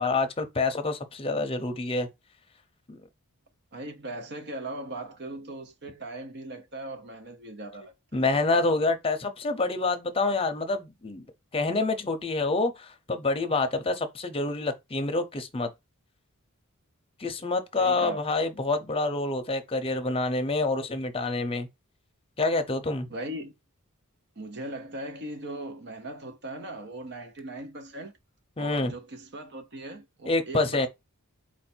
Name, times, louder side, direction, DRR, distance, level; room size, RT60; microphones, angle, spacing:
voice 1, 0.0-2.1 2.9-3.0 8.1-11.2 11.5-15.7 17.2-21.7 22.4-23.1 28.6-28.9 30.3-30.9, left 3 dB, 25° left, 0.8 m, -27 dB
voice 2, 3.7-8.3 17.8-18.2 23.1-23.5 24.4-28.1 28.6-30.9, right 1 dB, 50° right, 1.0 m, -39 dB
4.5 x 2.7 x 4.4 m
head